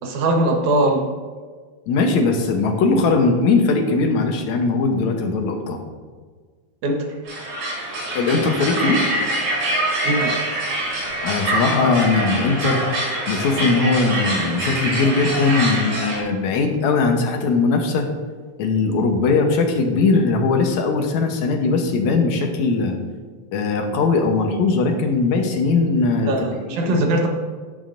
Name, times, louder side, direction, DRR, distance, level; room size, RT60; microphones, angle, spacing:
voice 1, 0.0-1.1 6.8-7.2 10.0-10.4 26.3-27.3, right 1 dB, 85° right, 3 dB, 2.7 m, -20 dB
voice 2, 1.9-5.8 8.1-9.1 11.2-12.8 13.3-18.1 18.6-23.0 23.5-26.6 26.8-27.0, left 4 dB, 75° left, 4 dB, 2.3 m, -20 dB
sound 1, 7.3-16.2, right 1 dB, 65° right, 3.8 m, -24 dB
10.5 x 10.0 x 2.6 m, 1.6 s
omnidirectional pair, 3.4 m